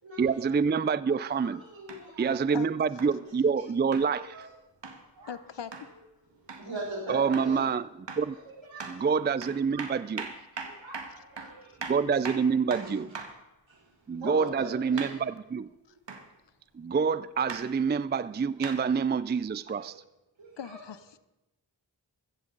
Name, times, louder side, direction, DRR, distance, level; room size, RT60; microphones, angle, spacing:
voice 1, 0.2-1.6 2.2-4.5 7.1-8.4 8.9-10.3 11.8-13.1 14.1-15.7 16.7-20.0, right 6 dB, 25° right, 0.4 m, -27 dB
voice 2, 1.0-2.3 3.0-3.1 4.1-4.5 5.2-5.4 5.9-6.0 6.4-7.6 8.7-8.9 9.7-9.8 10.6-11.8 12.8-12.9 13.7-15.1 19.7-19.9 20.4-20.8, right 2 dB, 80° right, 6.0 m, -41 dB
sound 1, 1.9-2.1 3.0-3.2 3.9-4.1 4.8-5.0 5.7-5.9 6.5-6.7 7.3-7.6 8.1-8.3 8.8-9.0 9.4-13.4 15.0-15.2 16.1-16.3 17.5-17.7 18.6-18.8 19.7-19.8, right 4 dB, 65° right, 1.7 m, -40 dB
voice 3, 5.3-5.9 11.4-11.5 20.6-21.2, left 7 dB, 70° left, 0.8 m, -40 dB
15.5 x 14.5 x 3.9 m
cardioid pair, 45°, 45 cm